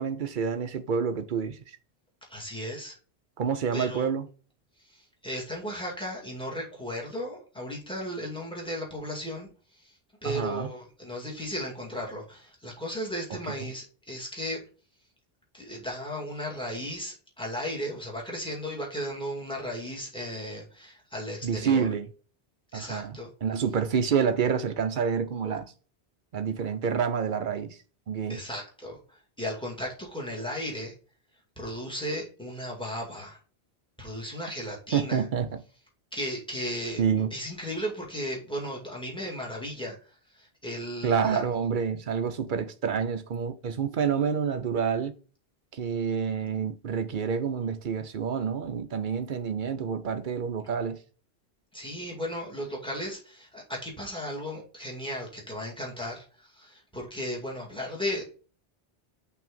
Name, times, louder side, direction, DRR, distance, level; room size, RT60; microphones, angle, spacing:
voice 1, 0.0-1.8 3.4-4.3 10.2-10.7 21.4-22.1 22.7-25.7 26.3-27.8 28.1-28.4 34.9-35.6 37.0-37.3 41.0-45.1 45.7-51.0, right 6 dB, 55° right, 0.7 m, -28 dB
voice 2, 2.3-3.0 3.7-4.1 4.8-10.0 10.2-14.6 15.5-21.9 22.7-23.3 28.3-30.9 31.6-33.4 34.0-35.2 36.1-41.4 51.7-58.2, equal, 5° left, 2.0 m, -35 dB
5.9 x 3.4 x 5.1 m
omnidirectional pair, 1.1 m